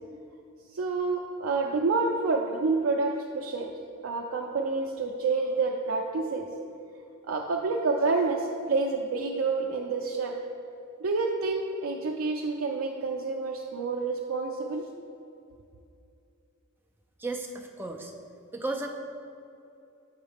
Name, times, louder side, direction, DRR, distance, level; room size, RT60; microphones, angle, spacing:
voice 1, 0.7-3.7 4.0-6.5 7.3-10.4 11.0-14.9, right 3 dB, 70° right, 0 dB, 0.4 m, -28 dB
voice 2, 17.2-18.1 18.5-18.9, right 2 dB, 10° right, 2 dB, 0.4 m, -34 dB
7.2 x 5.5 x 3.4 m, 2.6 s
head